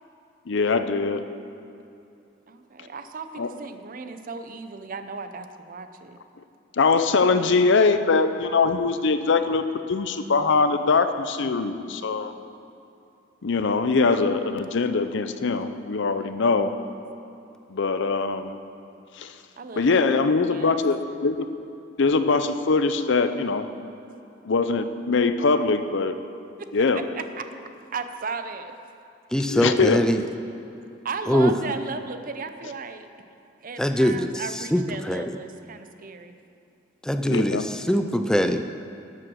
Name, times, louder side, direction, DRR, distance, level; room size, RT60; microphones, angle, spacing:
voice 1, 0.5-1.2 3.4-3.5 6.8-9.6 9.9-12.3 13.4-16.7 17.7-18.6 19.2-19.3 19.8-21.0 21.2-21.4 22.0-23.6 24.4-26.1 26.7-27.0 29.5-30.0 37.3-37.6, left 4 dB, 60° left, 10 dB, 0.6 m, -22 dB
voice 2, 2.5-6.2 19.6-20.0 20.2-20.8 26.6-27.4 27.9-28.8 31.0-33.1 33.6-36.4, right 4 dB, 45° right, 9 dB, 0.6 m, -36 dB
voice 3, 29.3-30.2 31.3-31.5 33.8-34.3 34.7-35.3 37.0-38.6, equal, 5° left, 7 dB, 0.4 m, -22 dB
12.5 x 7.7 x 6.2 m, 2.7 s
head